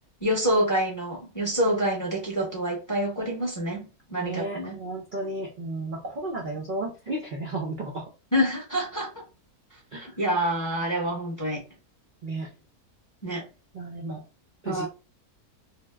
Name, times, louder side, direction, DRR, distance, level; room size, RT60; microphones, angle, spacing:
voice 1, 0.2-3.9 4.1-4.8 8.3-9.2 9.9-11.6 13.2-13.4 14.6-14.9, equal, 15° left, 0.7 m, -27 dB
voice 2, 4.1-8.1 9.9-10.2 12.2-12.5 13.7-14.2 14.6-14.9, right 2 dB, 65° right, 0.5 m, -33 dB
2.8 x 2.0 x 3.3 m
omnidirectional pair, 1.6 m